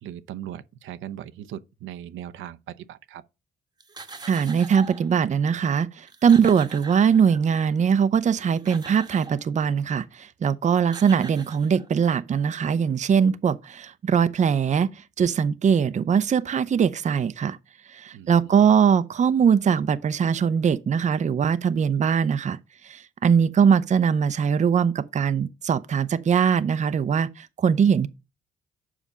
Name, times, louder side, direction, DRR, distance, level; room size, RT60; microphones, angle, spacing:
voice 1, 0.0-3.2 18.1-18.8, right 11 dB, 80° right, 0.7 m, -39 dB
sound 1, 3.8-5.1 5.8-5.9 6.1-7.6 8.3-9.4 10.5-10.6 10.8-12.1, right 4 dB, 20° right, 1.1 m, -42 dB
voice 2, 4.3-17.6 17.9-22.6 22.8-28.1, right 7 dB, 35° right, 0.6 m, -21 dB
7.3 x 5.0 x 5.5 m
cardioid pair, 90°, 20 cm